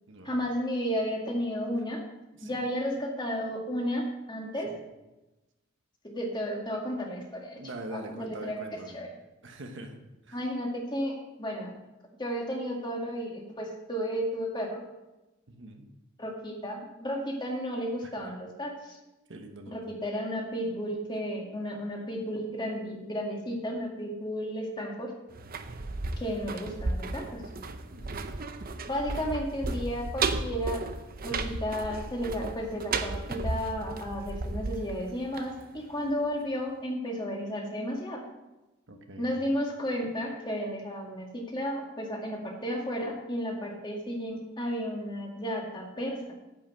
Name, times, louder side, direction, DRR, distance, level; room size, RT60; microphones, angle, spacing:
voice 1, 0.2-2.0 2.4-4.7 6.0-7.6 7.9-8.6 8.9-9.1 10.3-11.7 12.2-14.8 16.2-19.0 19.7-25.1 26.2-27.4 28.9-30.8 31.2-38.2 39.2-46.3, equal, 25° left, -1 dB, 2.1 m, -33 dB
voice 2, 7.6-8.9 9.4-10.0 10.2-10.4 15.5-15.9 18.0-18.1 19.3-19.8 27.9-28.4 38.9-39.4, right 1 dB, 65° right, 4 dB, 1.2 m, -43 dB
sound 1, 25.3-36.1 36.4-36.5, right 3 dB, 45° right, 0.7 m, -34 dB
9.7 x 5.8 x 7.8 m, 1.0 s
head